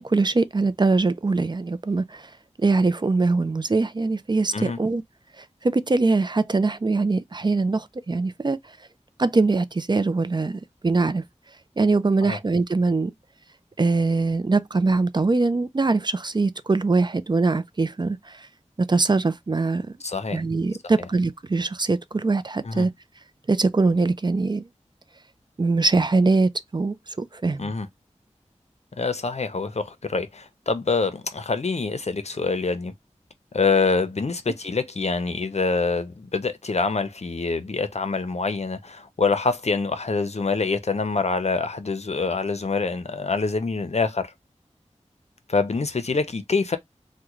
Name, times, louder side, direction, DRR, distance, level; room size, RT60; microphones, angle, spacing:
voice 1, 0.0-2.3 2.6-5.0 5.4-8.8 9.2-11.2 11.8-13.1 13.8-18.5 18.8-19.9 20.3-22.9 23.5-24.7 25.6-27.7, right 3 dB, 35° right, 0.4 m, -22 dB
voice 2, 20.0-20.4 22.6-22.9 27.6-27.9 29.0-32.9 33.5-44.3 45.5-46.8, left 4 dB, 60° left, 0.6 m, -25 dB
3.6 x 2.2 x 3.0 m
wide cardioid pair, 55°, 12 cm